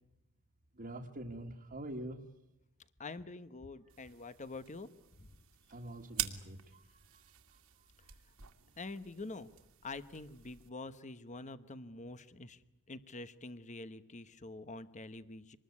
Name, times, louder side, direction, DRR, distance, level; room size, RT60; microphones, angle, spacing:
voice 1, 0.7-2.2 5.7-6.8, right 1 dB, 40° right, -1 dB, 1.8 m, -44 dB
voice 2, 3.0-4.9 5.2-5.4 8.8-9.5 9.8-12.6 12.9-15.6, left 3 dB, 35° left, 13 dB, 1.1 m, -46 dB
sound 1, 3.9-10.7, right 13 dB, 75° right, 2.3 m, -47 dB
26.0 x 20.5 x 9.6 m, 0.93 s
head